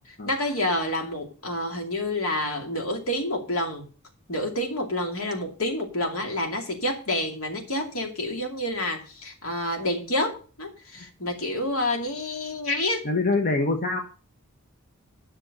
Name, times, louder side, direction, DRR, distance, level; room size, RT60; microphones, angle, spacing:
voice 1, 0.2-3.9 4.3-13.1, left 1 dB, 75° left, 2 dB, 2.5 m, -28 dB
voice 2, 13.0-14.0, left 3 dB, 45° left, 3 dB, 1.2 m, -24 dB
11.0 x 6.2 x 6.5 m, 0.38 s
head